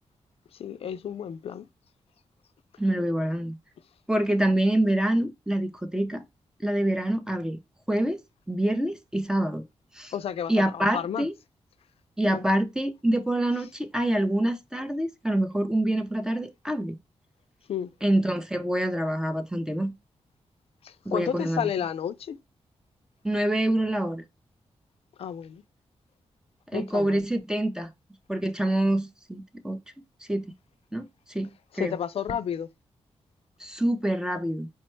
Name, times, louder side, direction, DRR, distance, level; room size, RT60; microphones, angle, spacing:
voice 1, 0.6-1.7 10.1-11.3 12.3-12.4 17.7-17.9 20.8-22.4 25.2-25.6 26.7-27.2 31.8-32.7, left 9 dB, 65° left, 0.4 m, -31 dB
voice 2, 2.8-3.6 4.1-6.2 6.6-7.6 7.9-8.2 8.5-9.6 9.9-10.1 10.5-11.3 12.2-17.0 18.0-19.9 21.1-21.7 23.2-24.2 26.7-27.9 28.3-29.8 30.3-30.5 30.9-32.0 33.6-34.7, right 1 dB, 5° right, 0.4 m, -26 dB
4.5 x 2.1 x 4.3 m
wide cardioid pair, 125°, 11 cm